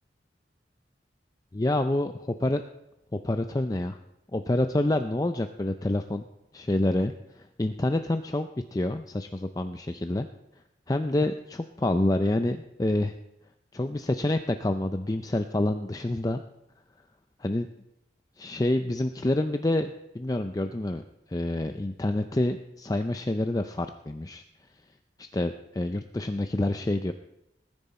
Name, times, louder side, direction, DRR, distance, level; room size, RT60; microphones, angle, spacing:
voice 1, 1.5-2.6 3.1-4.0 4.3-6.2 6.5-10.3 10.9-13.1 13.7-16.4 17.4-17.7 18.4-24.4 25.2-27.1, left 1 dB, 20° left, 8 dB, 0.4 m, -27 dB
20.0 x 10.5 x 4.2 m, 0.87 s
head